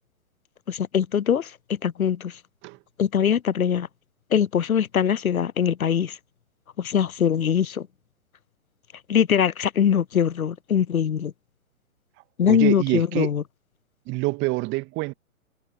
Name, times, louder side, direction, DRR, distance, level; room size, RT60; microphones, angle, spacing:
voice 1, 0.7-2.4 3.0-3.9 4.3-6.2 6.8-7.9 9.1-11.3 12.4-13.4, left 8 dB, 85° left, 0.6 m, -22 dB
voice 2, 12.5-13.3 14.1-15.1, right 24 dB, 25° right, 2.2 m, -26 dB
figure-of-eight pair, 120°, 41 cm